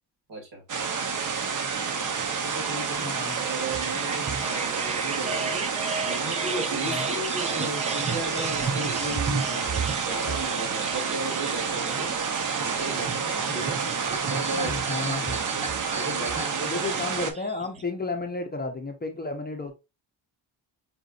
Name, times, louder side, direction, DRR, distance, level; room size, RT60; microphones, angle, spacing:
voice 1, 0.3-0.6 2.4-3.1 3.4-5.7 6.0-12.1 12.4-13.8 14.1-15.6 16.0-17.1, right 2 dB, 65° right, 2.2 m, -36 dB
sound 1, 0.7-17.3, right 6 dB, 45° right, 0.7 m, -29 dB
voice 2, 3.0-3.5 6.8-7.1 14.5-15.4 16.7-19.7, left 3 dB, 20° left, 0.6 m, -32 dB
sound 2, 3.7-17.8, right 4 dB, 20° right, 0.3 m, -34 dB
5.1 x 2.5 x 2.4 m
cardioid pair, 90°, 44 cm